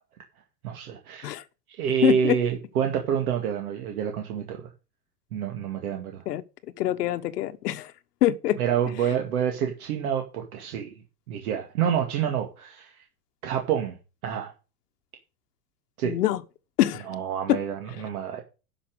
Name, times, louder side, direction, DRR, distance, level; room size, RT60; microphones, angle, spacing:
voice 1, 0.6-1.4 1.7-4.7 5.3-6.2 8.6-11.0 11.3-13.0 13.4-14.0 14.2-14.5 16.0-16.2 17.1-18.4, right 8 dB, 60° right, 2.3 m, -28 dB
voice 2, 2.0-2.4 6.3-6.4 6.8-7.9 8.2-8.6 16.0-16.4 16.8-17.1 17.5-17.6, left 14 dB, 75° left, 1.2 m, -24 dB
11.5 x 5.9 x 6.6 m
supercardioid pair, 180°, 48 cm